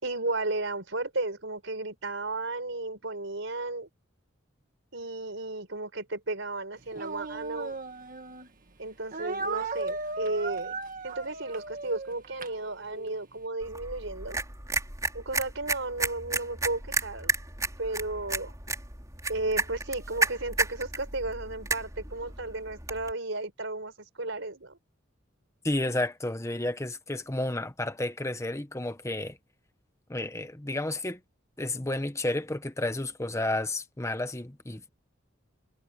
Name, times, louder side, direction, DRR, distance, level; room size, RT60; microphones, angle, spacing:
voice 1, 0.0-3.9 4.9-7.8 8.8-10.8 11.0-14.4 15.1-17.3 17.8-18.5 19.3-23.9 24.2-24.8, right 2 dB, 70° right, 5.5 m, -34 dB
Speech, 6.9-8.5 9.1-13.1, right 3 dB, 45° right, 1.8 m, -36 dB
sound 1, 13.6-23.1, right 3 dB, 15° right, 4.4 m, -33 dB
voice 2, 25.6-29.4 30.1-31.2 31.6-34.9, left 1 dB, 15° left, 1.1 m, -31 dB
head